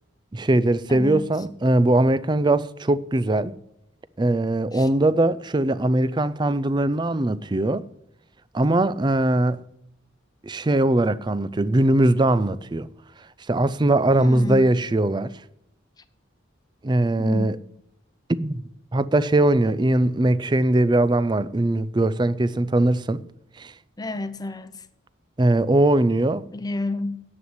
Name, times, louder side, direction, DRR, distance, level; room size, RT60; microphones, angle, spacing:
voice 1, 0.3-3.5 4.2-7.8 8.5-9.6 10.4-12.9 13.5-15.3 16.8-17.6 18.4-18.6 18.9-23.2 23.6-23.7 25.4-26.4, right 1 dB, 25° right, 0.4 m, -20 dB
voice 2, 0.9-1.3 4.7-4.9 14.2-14.7 17.2-17.6 24.0-24.9 26.5-27.2, left 2 dB, 20° left, 0.8 m, -30 dB
9.8 x 8.0 x 9.6 m
head